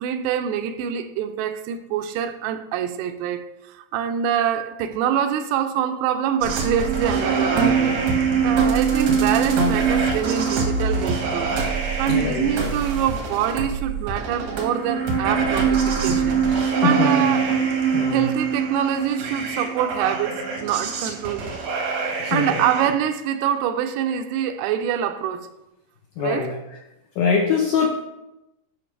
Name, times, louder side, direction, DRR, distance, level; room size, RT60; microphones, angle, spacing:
voice 1, 0.0-8.0 8.4-11.5 12.0-16.4 16.8-17.6 18.1-21.6 22.3-25.5 26.2-26.5, right 9 dB, 85° right, 2.8 m, -25 dB
sound 1, 6.4-22.9, right 5 dB, 70° right, 1.7 m, -23 dB
voice 2, 12.1-12.7 16.4-17.3 17.9-18.3 22.2-22.6 26.2-26.8 27.2-28.0, left 5 dB, 80° left, 1.9 m, -24 dB
11.5 x 5.2 x 3.2 m
omnidirectional pair, 4.8 m